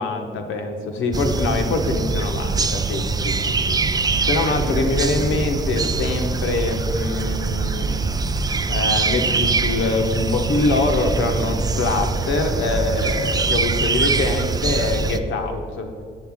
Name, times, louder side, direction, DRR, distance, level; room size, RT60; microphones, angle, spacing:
voice 1, 0.0-8.0 8.7-15.9, left 3 dB, 75° left, 4 dB, 1.0 m, -24 dB
sound 1, 1.1-15.2, right 4 dB, 20° right, 0.3 m, -23 dB
7.8 x 6.9 x 3.5 m, 2.1 s
cardioid pair, 90°, 20 cm